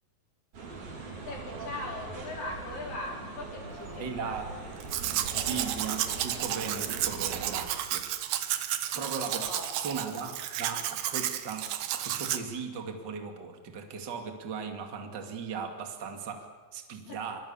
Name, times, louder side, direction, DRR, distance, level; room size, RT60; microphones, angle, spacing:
sound 1, 0.5-7.7, right 3 dB, 60° right, 6.5 m, -42 dB
voice 1, 1.3-4.7 5.3-5.7 6.7-6.9 8.9-9.7 17.0-17.2, left 2 dB, 55° left, 0 dB, 6.5 m, -40 dB
voice 2, 4.0-4.6 5.4-8.0 9.0-17.4, right 6 dB, 30° right, 4 dB, 2.3 m, -38 dB
Domestic sounds home sounds, 4.8-12.4, right 11 dB, 80° right, 3.3 m, -32 dB
25.0 x 25.0 x 7.2 m, 1.3 s
omnidirectional pair, 4.7 m